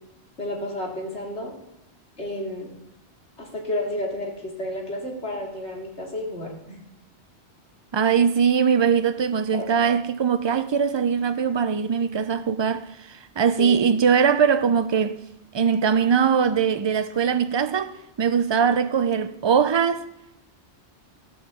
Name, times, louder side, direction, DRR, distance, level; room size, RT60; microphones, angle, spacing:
voice 1, 0.4-1.5 2.2-2.7 3.4-6.8 9.5-9.7 13.6-13.8, left 1 dB, 90° left, 2.8 m, -31 dB
voice 2, 7.9-15.2 15.5-20.0, right 7 dB, 45° right, 0.3 m, -21 dB
15.0 x 6.1 x 7.0 m
omnidirectional pair, 1.1 m